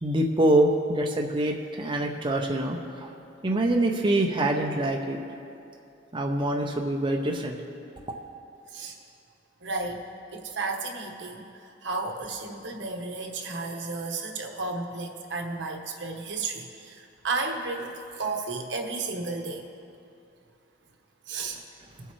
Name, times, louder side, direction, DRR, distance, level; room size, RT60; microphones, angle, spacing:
voice 1, 0.0-3.1 3.4-5.2 6.1-7.6 21.5-21.6, right 1 dB, 25° right, 1 dB, 0.6 m, -25 dB
voice 2, 9.6-10.0 10.3-11.4 11.8-19.6 21.3-21.6, right 3 dB, 75° right, 2 dB, 1.1 m, -33 dB
19.5 x 8.1 x 3.1 m, 2.6 s
head